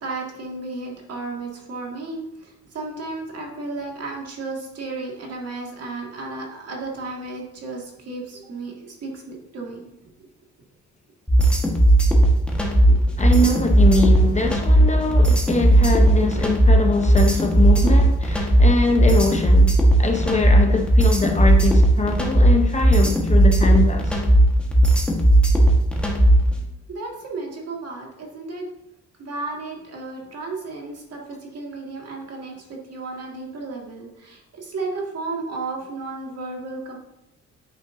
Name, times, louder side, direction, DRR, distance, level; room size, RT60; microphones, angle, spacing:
voice 1, 0.0-9.9 10.2-10.3 13.0-13.2 26.9-28.6 29.2-37.0, right 3 dB, 55° right, -1 dB, 1.9 m, -33 dB
sound 1, 11.3-26.5, right 1 dB, 5° left, 1.4 m, -16 dB
voice 2, 13.2-24.2, left 3 dB, 25° left, 3 dB, 0.8 m, -23 dB
8.9 x 5.1 x 2.6 m, 0.86 s
cardioid pair, 90°, 30 cm